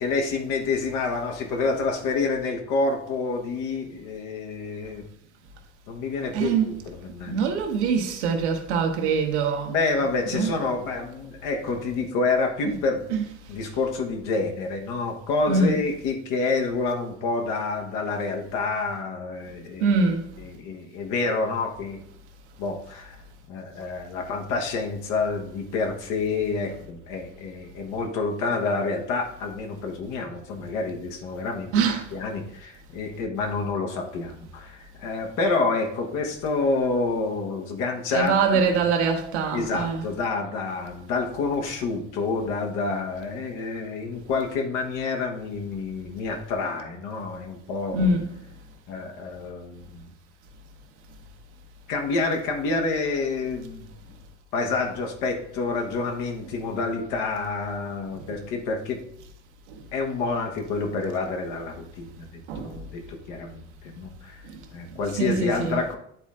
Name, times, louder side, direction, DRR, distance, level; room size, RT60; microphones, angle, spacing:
voice 1, 0.0-5.0 5.9-7.5 9.7-13.0 13.5-19.9 20.4-22.0 22.6-23.2 23.5-38.8 39.5-48.1 48.9-50.1 51.9-53.9 54.5-59.0 59.9-64.4 64.7-66.0, left 3 dB, 60° left, 1.3 m, -28 dB
voice 2, 6.3-6.8 7.3-9.7 10.3-10.6 12.6-12.8 15.5-15.8 19.8-20.3 31.7-32.1 38.1-40.0 47.9-48.3 62.5-62.7 65.2-65.8, right 4 dB, 70° right, 1.1 m, -23 dB
9.7 x 4.2 x 3.6 m
figure-of-eight pair, 60°, 35 cm